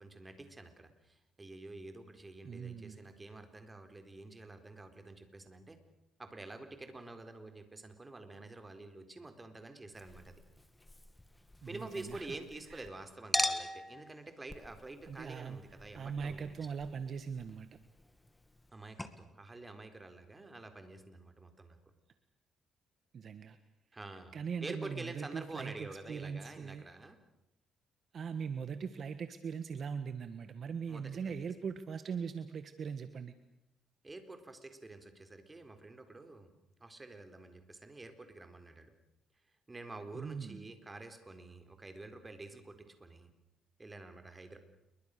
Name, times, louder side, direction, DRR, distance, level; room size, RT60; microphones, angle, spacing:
voice 1, 0.0-5.8 6.2-10.4 11.7-16.6 18.7-21.8 23.9-24.3 24.6-27.2 30.9-31.4 34.0-38.9 39.7-43.3 43.8-44.6, right 2 dB, 20° right, 7 dB, 4.2 m, -48 dB
voice 2, 2.4-3.1 11.6-12.4 12.7-12.9 15.1-15.6 15.9-17.7 23.1-23.6 24.3-26.9 28.1-33.3 40.1-40.7, right 6 dB, 55° right, 10 dB, 1.5 m, -40 dB
Chink clink, 10.0-12.9 13.3-18.7 19.0-19.1, left 2 dB, 10° left, 2.1 m, -41 dB
28.5 x 23.0 x 6.8 m, 0.84 s
cardioid pair, 90°, 0 cm